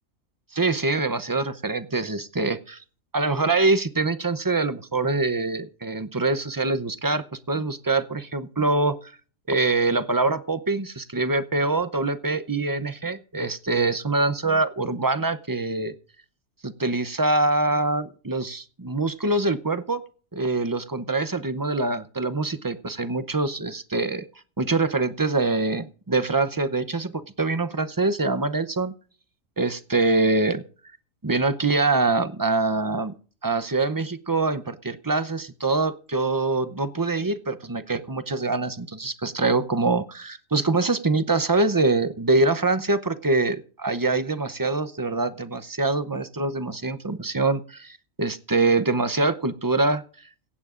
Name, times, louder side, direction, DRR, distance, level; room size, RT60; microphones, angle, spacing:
voice 1, 0.5-2.8 3.1-9.1 9.5-15.9 16.6-20.0 20.3-24.2 24.6-28.9 29.6-30.6 31.2-33.1 33.4-50.0, right 3 dB, 25° right, 13 dB, 0.5 m, -24 dB
17.5 x 16.0 x 2.5 m, 0.40 s
omnidirectional pair, 1.4 m